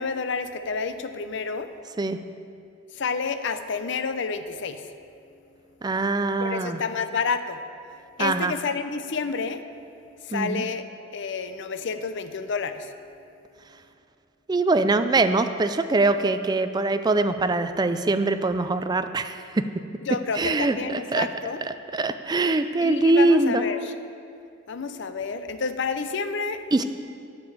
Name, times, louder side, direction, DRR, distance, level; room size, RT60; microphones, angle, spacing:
voice 1, 0.0-1.7 2.9-4.9 6.4-7.6 8.2-9.6 10.2-10.9 11.1-12.9 20.1-21.6 22.8-23.9 24.7-26.8, left 5 dB, 65° left, 10 dB, 0.6 m, -29 dB
voice 2, 5.8-6.8 8.2-8.5 10.3-10.6 14.5-19.6 20.3-21.3 21.6-23.6 26.7-26.8, right 2 dB, 20° right, 10 dB, 0.4 m, -23 dB
8.6 x 6.8 x 7.4 m, 2.5 s
head